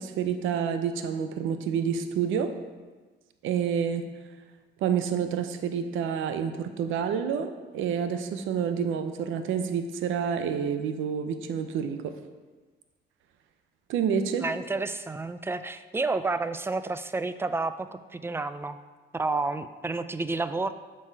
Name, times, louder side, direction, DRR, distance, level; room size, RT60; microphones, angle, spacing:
voice 1, 0.0-2.5 3.4-4.4 4.8-12.2 13.9-14.5, right 7 dB, 85° right, 9 dB, 0.6 m, -28 dB
voice 2, 14.4-18.8 19.1-20.7, right 3 dB, 10° right, 12 dB, 0.3 m, -30 dB
7.3 x 4.7 x 4.6 m, 1.3 s
cardioid pair, 90°, 20 cm